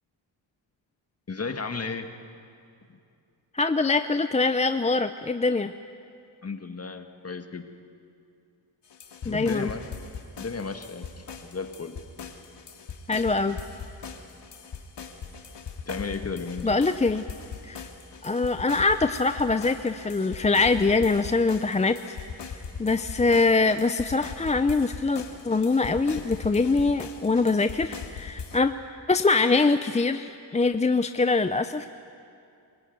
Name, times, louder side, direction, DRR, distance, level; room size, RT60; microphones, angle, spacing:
voice 1, 1.3-2.1 6.4-7.6 9.2-9.8 10.4-11.9 15.9-16.7, left 4 dB, 30° left, 6 dB, 1.7 m, -34 dB
voice 2, 3.5-5.7 9.2-9.7 13.1-13.6 16.6-17.2 17.6-17.9 18.2-22.2 22.8-28.7 29.1-31.9, left 3 dB, 15° left, 9 dB, 0.5 m, -23 dB
sound 1, 8.9-28.6, left 6 dB, 65° left, 2.3 m, -40 dB
25.0 x 17.0 x 9.4 m, 2.5 s
cardioid pair, 85°, 46 cm